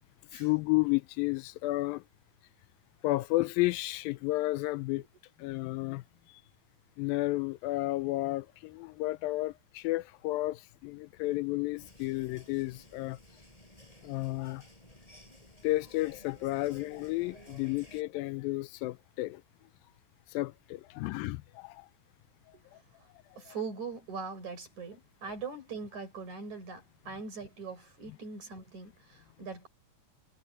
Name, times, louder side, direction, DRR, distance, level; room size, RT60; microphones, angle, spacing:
voice 1, 0.3-2.0 3.0-5.0 5.4-6.0 7.0-13.2 14.0-14.6 15.6-19.4 20.3-21.9 23.3-23.5 28.1-28.2, left 19 dB, 85° left, 2.3 m, -32 dB
sound 1, 11.7-18.0, left 1 dB, 10° left, 7.1 m, -55 dB
voice 2, 23.4-29.7, right 4 dB, 55° right, 7.6 m, -41 dB
omnidirectional pair, 4.1 m